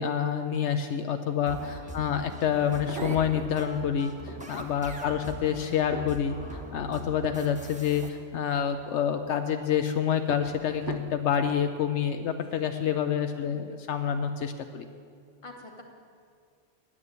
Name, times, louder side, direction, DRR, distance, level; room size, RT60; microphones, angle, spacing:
voice 1, 0.0-14.9, left 8 dB, 75° left, 7 dB, 0.9 m, -28 dB
sound 1, 1.5-8.1, equal, 5° right, 1.1 m, -43 dB
voice 2, 1.8-2.3 5.0-5.3 13.3-13.8 15.4-15.8, left 2 dB, 25° left, 2 dB, 1.2 m, -50 dB
sound 2, 1.9-2.0 2.6-3.6 4.1-4.8 5.4-8.8 9.2-9.6 10.3-11.7 12.4-12.8 13.1-13.2, right 6 dB, 70° right, 1.0 m, -42 dB
9.7 x 7.6 x 9.5 m, 2.2 s
omnidirectional pair, 1.2 m